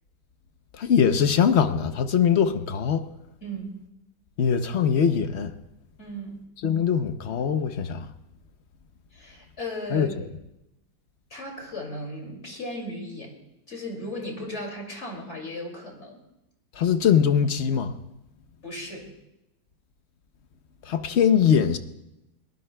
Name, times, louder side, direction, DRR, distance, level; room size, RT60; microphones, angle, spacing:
voice 1, 0.8-3.1 4.4-5.5 6.6-8.1 9.9-10.1 16.8-17.9 20.9-21.8, left 7 dB, 55° left, 0.8 m, -22 dB
voice 2, 3.4-3.7 6.0-6.4 9.1-10.1 11.3-13.3 13.7-16.2 18.6-19.1, left 1 dB, 40° left, 2.9 m, -36 dB
21.5 x 19.0 x 2.2 m
omnidirectional pair, 1.8 m